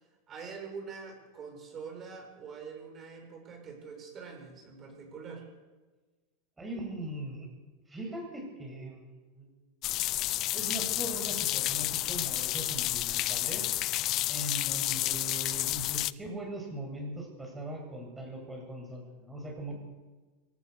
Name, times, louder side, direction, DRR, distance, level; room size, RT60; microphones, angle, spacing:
voice 1, 0.3-5.5, right 5 dB, 30° right, 2 dB, 6.9 m, -44 dB
voice 2, 6.6-7.5 7.9-9.5 10.5-13.7 14.3-19.7, right 1 dB, 10° right, 1 dB, 7.7 m, -40 dB
sound 1, 9.8-16.1, left 16 dB, 40° left, 0.6 m, -30 dB
22.5 x 18.5 x 6.9 m, 1.3 s
supercardioid pair, 135°, 0 cm